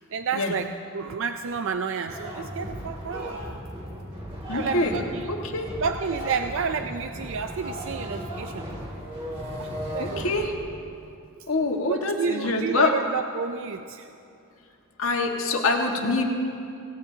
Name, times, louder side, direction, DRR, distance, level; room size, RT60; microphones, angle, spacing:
voice 1, 0.1-3.4 4.5-5.3 5.8-8.7 9.6-10.3 11.9-14.1, right 5 dB, 60° right, 7 dB, 0.5 m, -30 dB
sound 1, 2.1-10.5, equal, 25° right, 2.6 m, -36 dB
voice 2, 4.5-4.9 5.3-5.7 10.0-10.5 11.5-12.9 15.0-16.2, left 3 dB, 70° left, 1 dB, 1.7 m, -25 dB
26.0 x 18.0 x 2.8 m, 2.6 s
head